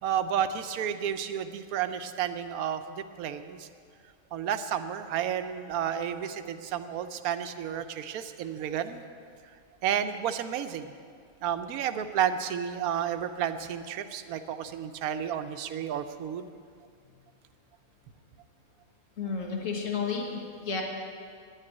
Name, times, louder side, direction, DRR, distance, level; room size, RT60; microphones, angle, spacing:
voice 1, 0.0-3.7 4.3-9.0 9.8-10.9 11.4-16.5, right 9 dB, 85° right, 9 dB, 1.1 m, -31 dB
voice 2, 19.2-20.8, left 5 dB, 60° left, 1 dB, 1.8 m, -32 dB
10.0 x 9.1 x 9.7 m, 2.2 s
omnidirectional pair, 1.5 m